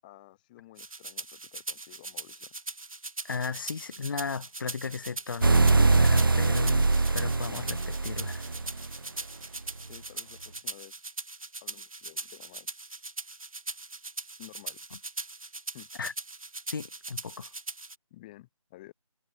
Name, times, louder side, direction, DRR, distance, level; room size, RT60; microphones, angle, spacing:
voice 1, 0.0-2.5 9.9-10.9 11.6-13.0 14.4-14.8 15.7-15.9 18.1-18.9, left 17 dB, 15° left, 7.2 m, -52 dB
sound 1, 0.8-17.9, right 3 dB, 65° right, 5.9 m, -40 dB
voice 2, 3.2-8.5 16.0-16.1 16.7-17.5, left 5 dB, 35° left, 4.8 m, -36 dB
sound 2, 5.4-9.0, right 3 dB, 35° right, 0.5 m, -23 dB
figure-of-eight pair, 165°, 19 cm